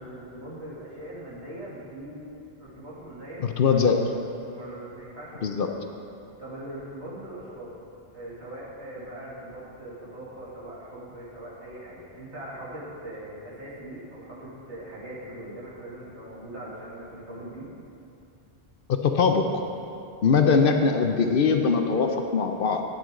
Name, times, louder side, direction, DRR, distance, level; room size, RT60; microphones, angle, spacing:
voice 1, 0.0-2.3 2.6-5.7 6.4-7.7 8.1-17.7, right 1 dB, 80° right, -8 dB, 2.8 m, -41 dB
voice 2, 3.4-4.0 5.4-5.7 18.9-19.5 20.2-22.8, left 5 dB, 60° left, 5 dB, 0.8 m, -21 dB
11.0 x 9.9 x 3.7 m, 2.7 s
omnidirectional pair, 1.1 m